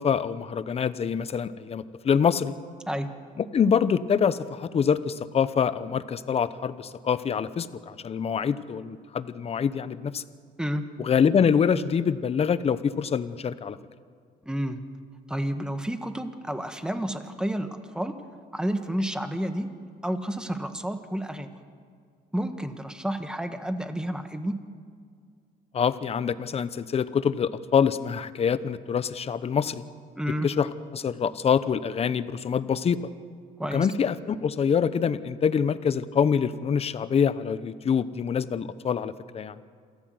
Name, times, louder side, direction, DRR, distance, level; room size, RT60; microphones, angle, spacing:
voice 1, 0.0-2.5 3.4-10.2 11.0-13.8 25.7-29.8 30.4-30.7 30.9-33.0 33.7-39.6, left 7 dB, 35° left, 14 dB, 1.0 m, -25 dB
voice 2, 14.4-14.8 15.3-18.1 18.5-19.7 20.0-21.5 22.3-24.5 30.2-30.5 33.6-33.9, equal, 5° right, 7 dB, 1.7 m, -30 dB
27.5 x 14.5 x 7.9 m, 2.1 s
cardioid pair, 110°, 17 cm